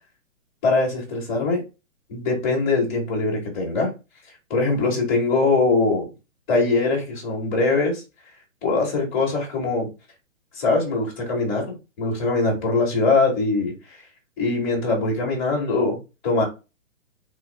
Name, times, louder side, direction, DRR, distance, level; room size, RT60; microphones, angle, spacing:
voice 1, 0.6-1.6 2.1-3.9 4.5-6.1 6.5-8.0 8.6-9.9 10.5-13.7 14.4-16.0 16.2-16.4, left 3 dB, ahead, 0.4 m, -22 dB
3.2 x 2.2 x 3.3 m
hypercardioid pair, 145°, 40 cm